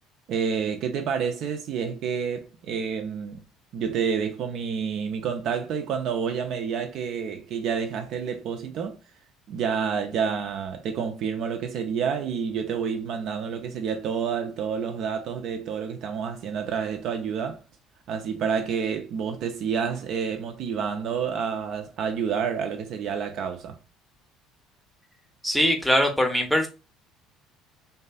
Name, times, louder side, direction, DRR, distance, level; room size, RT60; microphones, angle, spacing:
voice 1, 0.3-3.4 3.7-9.0 9.5-17.6 18.1-23.8, right 6 dB, 50° right, 0.3 m, -29 dB
voice 2, 25.4-26.7, equal, ahead, 0.6 m, -22 dB
2.6 x 2.3 x 2.3 m
figure-of-eight pair, 55°, 0 cm